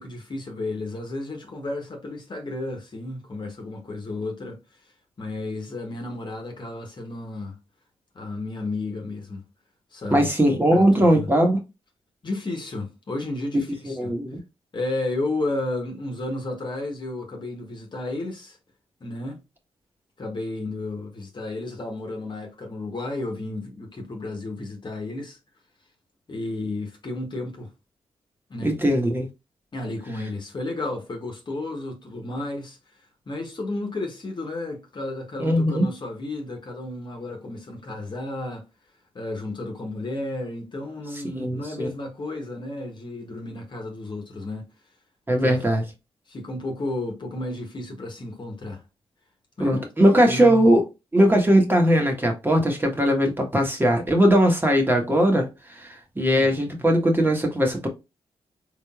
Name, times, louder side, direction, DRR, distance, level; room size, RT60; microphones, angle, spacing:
voice 1, 0.0-4.6 5.2-7.6 8.1-9.5 9.9-10.3 10.7-11.3 12.2-14.2 14.7-18.6 19.0-19.4 20.2-25.4 26.3-27.7 28.5-28.7 29.7-32.8 33.3-38.6 39.1-44.7 45.4-45.6 46.3-48.8 49.6-50.6 56.2-56.8, left 2 dB, 45° left, 1.3 m, -32 dB
voice 2, 10.1-11.6 13.5-13.6 14.0-14.4 28.6-29.3 35.4-35.9 41.3-41.9 45.3-45.8 49.6-50.9 51.1-55.5 55.7-57.9, equal, 20° right, 1.4 m, -20 dB
3.9 x 3.3 x 2.4 m
cardioid pair, 65°, 11 cm